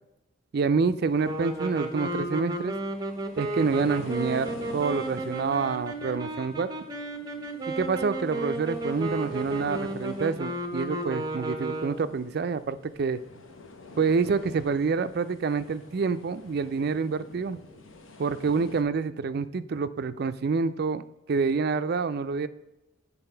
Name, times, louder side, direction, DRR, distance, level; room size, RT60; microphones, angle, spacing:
voice 1, 0.5-2.7 3.4-6.7 7.7-13.2 14.0-17.6 18.2-22.5, right 5 dB, 50° right, 12 dB, 0.4 m, -27 dB
sound 1, 1.0-18.8, left 2 dB, 75° left, 0.8 m, -47 dB
sound 2, 1.2-12.2, right 1 dB, 20° right, 0.7 m, -33 dB
7.8 x 4.1 x 5.5 m, 1.0 s
head